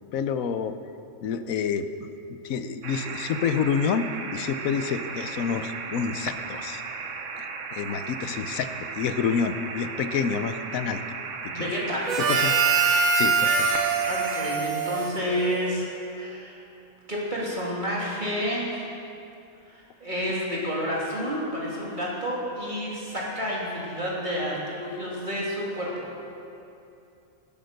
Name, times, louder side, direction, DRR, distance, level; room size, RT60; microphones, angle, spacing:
voice 1, 0.1-0.8 1.2-1.9 2.4-6.8 7.4-11.0 11.4-11.7 12.2-12.5 13.1-13.7, left 6 dB, 85° left, 10 dB, 1.1 m, -28 dB
sound 1, 2.8-14.6, right 5 dB, 65° right, 1.3 m, -36 dB
voice 2, 11.5-12.2 14.0-15.9 16.1-16.6 17.1-18.9 19.7-26.1, equal, 35° right, -5 dB, 2.6 m, -30 dB
Harmonica, 12.1-15.9, right 5 dB, 90° right, 1.5 m, -24 dB
18.5 x 8.9 x 6.6 m, 2.7 s
omnidirectional pair, 1.4 m